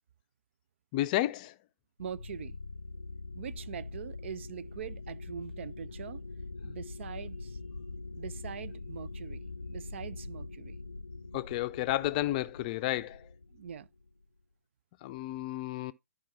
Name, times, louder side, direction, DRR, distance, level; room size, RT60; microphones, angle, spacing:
voice 1, 0.9-1.5 11.3-13.3 15.0-15.9, left 15 dB, 30° left, 0.5 m, -31 dB
sound 1, 2.0-14.2, left 3 dB, 85° left, 0.6 m, -43 dB
voice 2, 2.0-2.6 3.3-6.2 6.6-7.6 8.1-10.8 13.5-13.9, right 8 dB, 50° right, 0.4 m, -43 dB
12.0 x 4.9 x 4.3 m
figure-of-eight pair, 125°, 8 cm